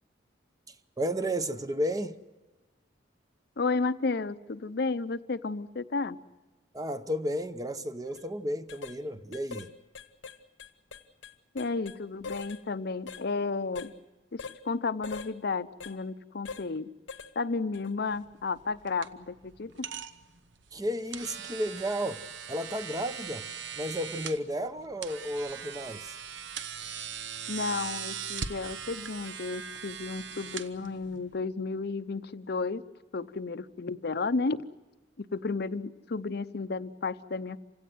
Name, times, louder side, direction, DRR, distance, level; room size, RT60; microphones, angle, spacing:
voice 1, 0.7-2.2 6.7-9.7 20.7-22.2 22.5-23.5 23.8-26.2, equal, 20° right, 0.8 m, -33 dB
voice 2, 3.6-6.2 11.5-13.9 14.3-16.9 17.4-19.7 27.5-32.8 33.1-34.6 35.2-37.6, left 4 dB, 60° left, 0.6 m, -32 dB
sound 1, 8.0-8.2 8.7-9.0 9.3-9.7 9.9-12.0 12.2-12.6 13.1-13.2 13.8-13.9 14.4-14.6 15.0-15.3 15.8-15.9 16.5-16.7 17.1-17.3 17.7-17.9, left 4 dB, 90° left, 1.2 m, -42 dB
sound 2, 18.1-31.3, right 7 dB, 70° right, 0.9 m, -40 dB
27.0 x 16.5 x 7.8 m
head